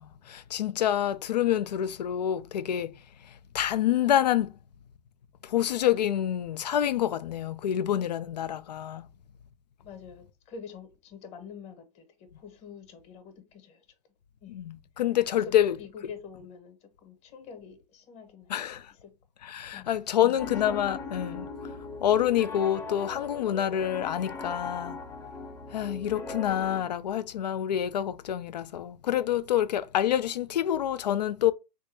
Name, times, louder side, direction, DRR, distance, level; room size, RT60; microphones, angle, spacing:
voice 1, 0.0-3.0 3.2-4.5 5.4-9.1 14.5-15.8 18.5-18.9 19.4-21.5 22.0-25.0 25.7-31.5, left 11 dB, 90° left, 0.4 m, -27 dB
voice 2, 9.8-13.8 14.4-14.6 15.3-18.6 18.9-19.1 19.7-20.6, left 6 dB, 30° left, 0.9 m, -46 dB
Piano, 20.4-26.8, left 4 dB, 10° left, 0.6 m, -39 dB
3.3 x 2.5 x 3.2 m
hypercardioid pair, 120°, 21 cm